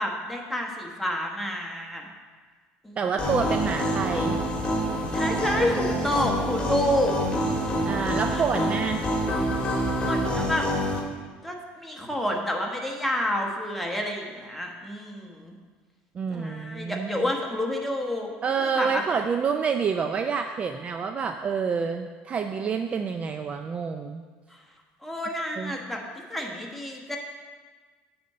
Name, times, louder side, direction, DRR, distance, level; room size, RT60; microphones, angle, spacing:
voice 1, 0.0-2.1 2.8-3.0 5.1-7.1 8.3-8.7 10.0-10.7 11.4-15.5 16.3-19.0 25.0-26.0 26.3-27.2, left 1 dB, ahead, 0 dB, 1.3 m, -29 dB
voice 2, 3.0-4.4 7.9-9.0 16.1-17.3 18.4-24.2 25.6-25.8, right 6 dB, 30° right, 6 dB, 0.4 m, -28 dB
sound 1, 3.2-11.0, equal, 25° left, 1.7 m, -27 dB
8.6 x 4.2 x 6.7 m, 1.4 s
cardioid pair, 120°, 4 cm